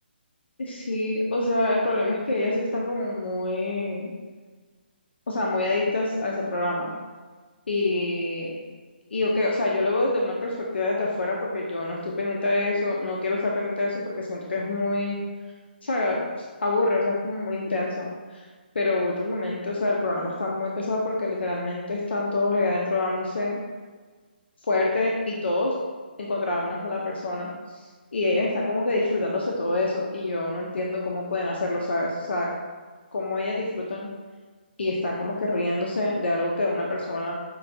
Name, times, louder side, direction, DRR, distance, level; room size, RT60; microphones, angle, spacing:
voice 1, 0.6-4.1 5.3-6.9 7.7-8.5 9.1-15.2 15.8-16.3 16.6-18.4 18.7-23.6 24.7-25.7 26.2-27.5 28.1-32.5 33.1-34.1 34.8-37.3, left 2 dB, 80° left, -2 dB, 0.5 m, -26 dB
5.3 x 2.2 x 2.6 m, 1.4 s
hypercardioid pair, 165°, 6 cm